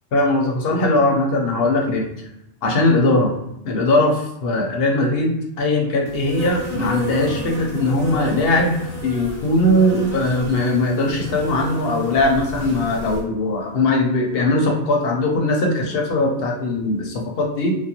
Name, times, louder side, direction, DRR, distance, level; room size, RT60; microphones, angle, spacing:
voice 1, 0.1-2.1 2.6-3.3 3.6-8.8 9.0-17.7, left 2 dB, 65° left, 1 dB, 0.8 m, -20 dB
Insect, 6.1-13.2, right 1 dB, 40° right, 0.9 m, -33 dB
2.4 x 2.2 x 2.8 m, 0.81 s
omnidirectional pair, 1.2 m